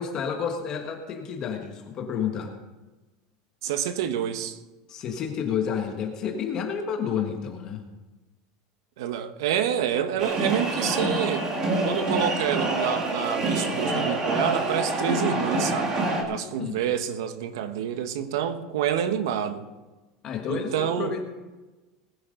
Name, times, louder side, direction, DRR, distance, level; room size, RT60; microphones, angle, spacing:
voice 1, 0.0-2.5 4.9-7.8 16.2-16.8 20.2-21.2, left 7 dB, 30° left, 1.4 m, -30 dB
voice 2, 3.6-4.6 9.0-11.5 11.8-16.0 16.3-19.7 20.5-21.2, right 9 dB, 80° right, 1.3 m, -28 dB
sound 1, 10.2-16.2, right 2 dB, 25° right, 1.9 m, -26 dB
20.0 x 10.5 x 3.9 m
supercardioid pair, 170°, 2 cm